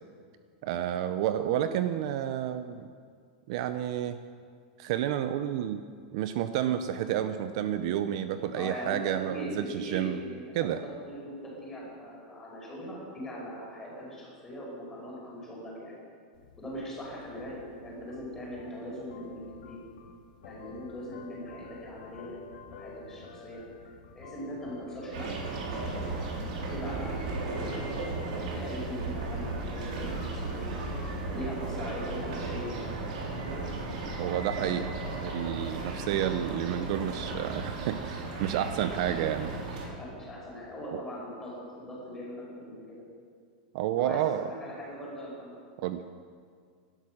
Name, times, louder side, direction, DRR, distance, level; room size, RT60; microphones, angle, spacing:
voice 1, 0.6-2.9 3.5-4.2 4.8-5.8 6.1-10.2 10.5-10.8 34.2-34.9 35.2-39.5 40.9-41.0 43.7-44.5 45.8-46.0, right 11 dB, 45° right, 10 dB, 0.6 m, -30 dB
voice 2, 1.4-1.7 8.5-15.9 16.6-19.8 20.4-22.4 22.7-23.6 24.2-26.1 26.7-28.2 28.4-30.7 31.3-32.9 39.0-39.3 40.0-43.0 44.0-45.5, equal, 10° left, -4 dB, 5.2 m, -40 dB
sound 1, 16.3-27.9, left 4 dB, 75° left, 2.3 m, -51 dB
sound 2, 25.1-39.9, right 3 dB, 65° right, 4.4 m, -35 dB
18.0 x 12.0 x 6.4 m, 2.1 s
supercardioid pair, 170°, 4 cm